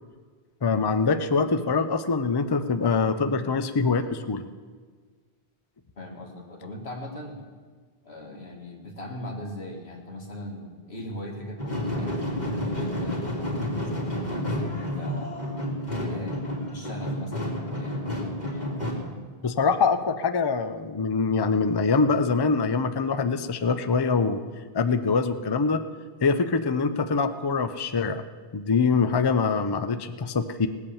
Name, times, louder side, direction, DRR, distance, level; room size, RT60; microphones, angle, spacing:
voice 1, 0.6-4.4 19.4-24.4 24.7-25.8 26.2-28.2 28.5-30.7, left 4 dB, 30° left, 10 dB, 0.6 m, -24 dB
voice 2, 6.0-7.4 8.0-15.3 15.9-16.4 16.7-18.0, left 1 dB, 85° left, 0 dB, 2.5 m, -39 dB
sound 1, 11.6-18.9, left 1 dB, 45° left, 2.7 m, -30 dB
18.5 x 8.4 x 7.1 m, 1.5 s
omnidirectional pair, 1.0 m